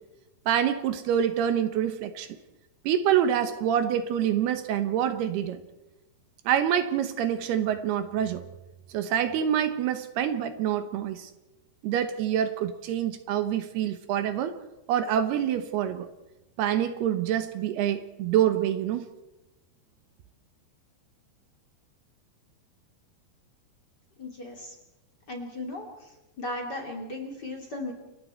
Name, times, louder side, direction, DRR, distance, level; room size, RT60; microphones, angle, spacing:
voice 1, 0.5-2.3 2.8-5.6 6.5-8.5 8.9-11.3 11.8-14.5 14.9-16.1 16.6-19.1, right 10 dB, 75° right, 9 dB, 3.0 m, -26 dB
voice 2, 24.2-24.7 25.3-25.9 26.4-27.9, left 2 dB, 30° left, 2 dB, 3.0 m, -36 dB
29.0 x 22.0 x 4.5 m, 0.99 s
omnidirectional pair, 4.8 m